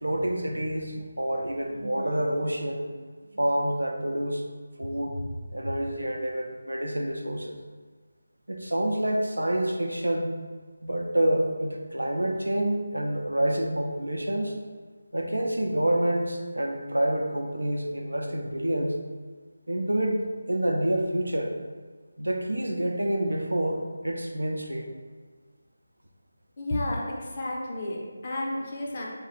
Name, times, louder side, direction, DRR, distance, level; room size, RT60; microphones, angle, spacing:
voice 1, 0.0-2.8 3.3-4.4 4.8-5.2 5.5-7.6 8.5-10.3 10.8-14.5 15.1-19.0 19.7-21.5 22.2-24.9, right 1 dB, 75° right, 3 dB, 0.5 m, -28 dB
voice 2, 26.6-29.1, left 1 dB, 30° left, -3 dB, 0.7 m, -31 dB
3.3 x 2.4 x 4.2 m, 1.5 s
figure-of-eight pair, 155°, 0 cm